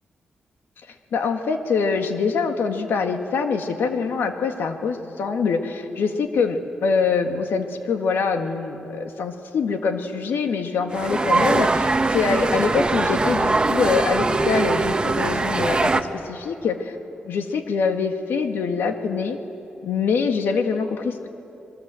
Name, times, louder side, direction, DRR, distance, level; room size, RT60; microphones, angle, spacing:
voice 1, 1.1-17.0 17.2-19.4 19.8-21.3, left 5 dB, 90° left, 5 dB, 1.9 m, -24 dB
sound 1, 10.9-16.0, right 3 dB, 25° right, 1.1 m, -21 dB
27.5 x 21.0 x 7.7 m, 2.8 s
cardioid pair, 85°, 4 cm